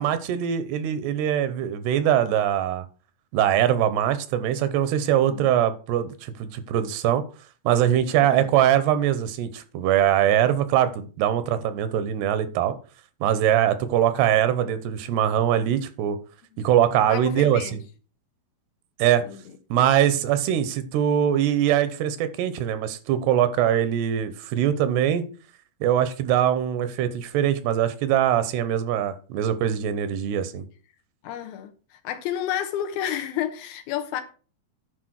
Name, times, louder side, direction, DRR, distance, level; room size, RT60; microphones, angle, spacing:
voice 1, 0.0-2.9 3.3-7.2 7.6-12.8 13.2-16.2 16.6-17.8 19.0-19.3 19.7-25.2 25.8-30.6, right 10 dB, 85° right, 3.0 m, -22 dB
voice 2, 17.1-17.8 19.2-19.4 31.2-34.2, left 10 dB, 75° left, 2.5 m, -31 dB
10.0 x 4.8 x 6.2 m
omnidirectional pair, 4.7 m